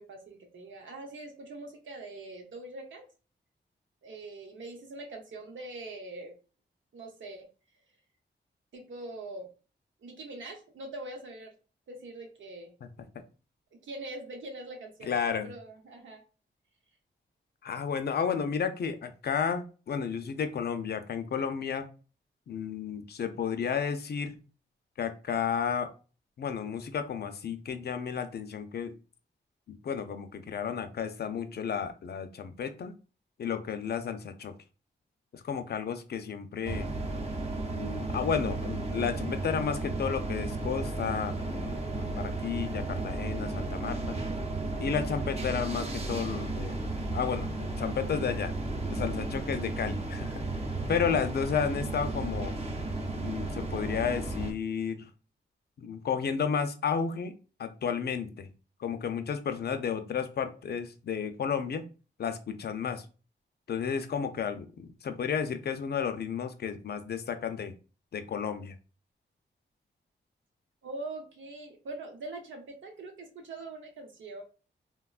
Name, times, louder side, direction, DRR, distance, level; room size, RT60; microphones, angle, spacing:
voice 1, 0.0-3.0 4.0-6.3 6.9-7.5 8.7-9.5 10.0-11.5 11.9-12.7 13.8-15.1 15.4-16.2 70.8-74.4, right 2 dB, 90° right, 2 dB, 0.8 m, -43 dB
voice 2, 15.0-15.5 17.6-21.9 22.5-24.4 25.0-25.9 26.4-28.9 29.7-32.9 33.4-34.5 35.3-36.9 37.7-44.2 44.8-46.8 47.1-48.6 48.9-50.4 50.9-52.6 53.2-55.1 55.8-57.3 57.6-58.5 58.8-61.9 62.2-63.0 63.7-67.7 68.1-68.7, left 7 dB, 60° left, 8 dB, 0.5 m, -32 dB
sound 1, 36.6-54.5, right 2 dB, 30° right, 0.7 m, -34 dB
3.3 x 2.2 x 2.4 m, 0.35 s
cardioid pair, 80°, 19 cm